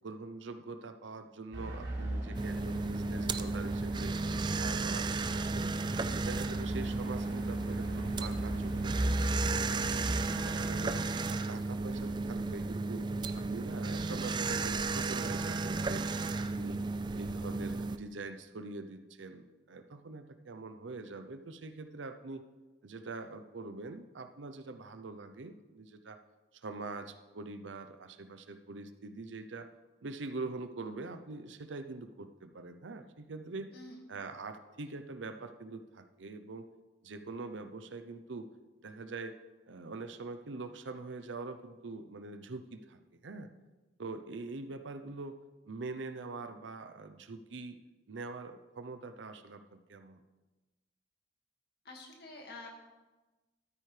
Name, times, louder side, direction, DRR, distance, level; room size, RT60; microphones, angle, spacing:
voice 1, 0.0-4.1 4.5-5.7 6.1-10.0 10.4-11.0 11.3-13.1 13.3-16.1 16.4-22.4 22.8-26.2 26.6-29.7 30.0-33.7 34.1-36.7 37.0-38.5 38.8-39.4 39.7-43.5 44.0-45.4 45.7-47.8 48.1-50.2, right 3 dB, 90° right, 9 dB, 0.7 m, -44 dB
sound 1, 1.5-10.7, right 1 dB, 75° right, 3.6 m, -38 dB
sound 2, 2.3-18.0, right 3 dB, 25° right, 0.3 m, -34 dB
voice 2, 10.1-10.5 33.7-34.0 51.9-52.7, left 2 dB, 60° left, 1 dB, 2.0 m, -48 dB
13.0 x 9.1 x 3.3 m, 1.2 s
head